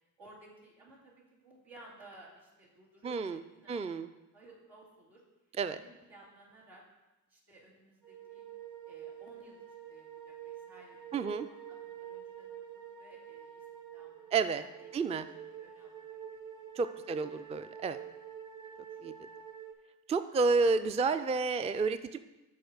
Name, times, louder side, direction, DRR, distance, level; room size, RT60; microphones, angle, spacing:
voice 1, 0.2-4.1 4.3-5.2 5.7-6.8 7.3-8.4 8.8-11.3 11.7-13.7 13.9-16.2 17.0-17.4 18.5-18.6 18.9-19.0, right 2 dB, 90° right, -6 dB, 2.3 m, -58 dB
voice 2, 3.0-3.4 3.7-4.1 5.6-5.8 11.1-11.5 14.3-14.6 14.9-15.3 16.8-18.0 19.0-19.1 20.1-22.2, right 4 dB, 15° right, 11 dB, 0.3 m, -30 dB
sound 1, 8.0-19.7, right 9 dB, 45° right, 1.1 m, -47 dB
6.9 x 4.0 x 6.5 m, 1.0 s
supercardioid pair, 45°, 42 cm